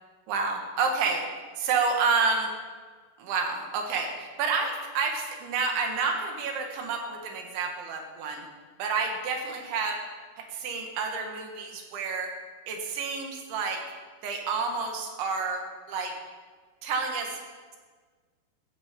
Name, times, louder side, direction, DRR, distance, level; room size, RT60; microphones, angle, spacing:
voice 1, 0.3-1.3 1.6-2.5 3.2-8.5 8.8-10.0 10.4-12.3 12.7-13.8 14.2-16.1 16.8-17.4, right 4 dB, 80° right, 3 dB, 4.0 m, -29 dB
15.0 x 14.0 x 5.3 m, 1.5 s
omnidirectional pair, 5.3 m